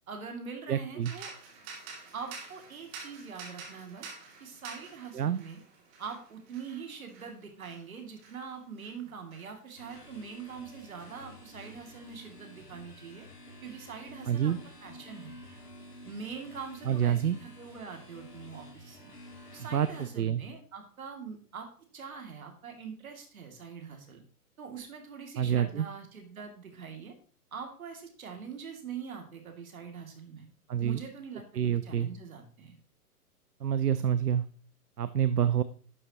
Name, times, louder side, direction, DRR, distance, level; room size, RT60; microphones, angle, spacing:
voice 1, 0.1-1.3 2.1-4.1 4.4-5.6 6.0-13.3 13.6-14.5 14.8-15.3 16.0-19.1 19.5-21.7 21.9-24.2 24.6-27.1 27.5-30.5 30.8-32.8, right 6 dB, 65° right, 4 dB, 2.6 m, -43 dB
voice 2, 0.7-1.1 5.1-5.4 14.3-14.6 16.9-17.4 19.7-20.4 25.4-25.9 30.7-31.0 31.5-32.1 33.6-34.4 35.0-35.6, right 9 dB, 80° right, 14 dB, 0.6 m, -27 dB
sound 1, 1.0-10.7 11.0-12.3, right 4 dB, 25° right, 2.7 m, -49 dB
sound 2, 9.8-20.1, left 1 dB, 85° left, 2.0 m, -50 dB
11.5 x 7.8 x 3.0 m, 0.43 s
figure-of-eight pair, 120°, 46 cm